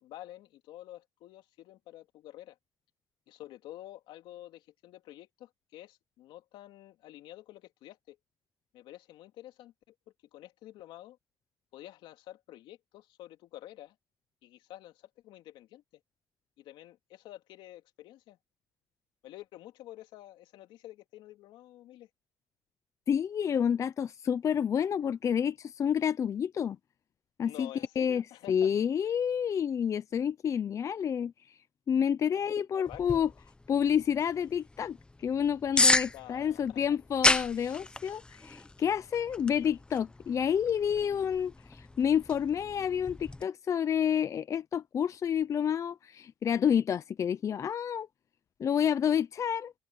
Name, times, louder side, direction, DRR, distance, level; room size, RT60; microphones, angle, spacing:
voice 1, 0.0-2.6 3.3-8.2 8.7-9.9 10.3-11.2 11.7-14.0 14.4-15.8 16.6-18.4 19.2-22.1 27.4-28.7 32.7-33.3 36.0-36.8, left 14 dB, 80° left, 2.9 m, -49 dB
voice 2, 23.1-26.8 27.4-27.7 28.0-28.2 28.5-31.5 31.9-33.3 33.7-48.1 48.6-49.7, left 8 dB, 40° left, 0.6 m, -29 dB
sound 1, 32.9-43.4, left 2 dB, 10° left, 1.1 m, -33 dB
cardioid pair, 125°, 8 cm